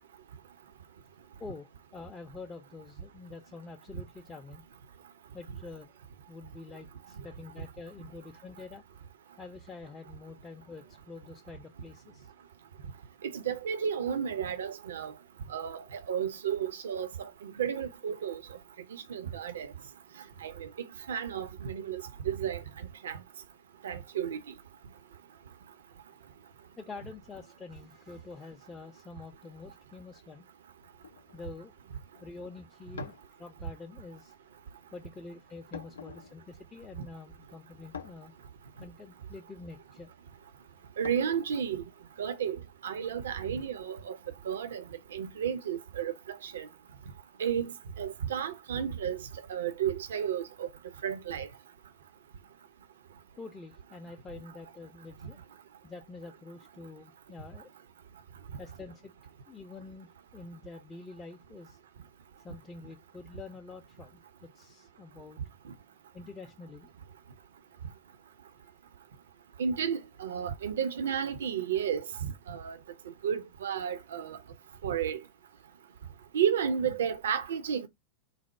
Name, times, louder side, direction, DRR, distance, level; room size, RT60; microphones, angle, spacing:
voice 1, 1.4-4.6 5.3-5.9 6.3-8.8 9.4-12.3 26.8-30.5 31.3-31.7 32.2-34.3 34.9-38.3 38.8-40.1 53.4-55.4 55.8-57.7 58.6-59.1 59.5-61.8 62.4-65.4 66.1-66.9, left 4 dB, 15° left, 0.5 m, -47 dB
voice 2, 13.2-15.1 15.5-18.4 18.9-19.7 20.4-20.7 21.1-22.6 23.0-23.2 23.8-24.4 41.0-41.8 42.2-44.2 44.4-44.8 45.1-46.7 47.4-49.2 49.5-50.7 51.0-51.5 69.6-72.8 73.2-74.4 74.8-75.2 76.3-77.9, right 8 dB, 65° right, 0.5 m, -32 dB
sound 1, 30.8-42.2, left 6 dB, 70° left, 0.4 m, -50 dB
4.0 x 2.0 x 4.4 m
figure-of-eight pair, 90°, 0 cm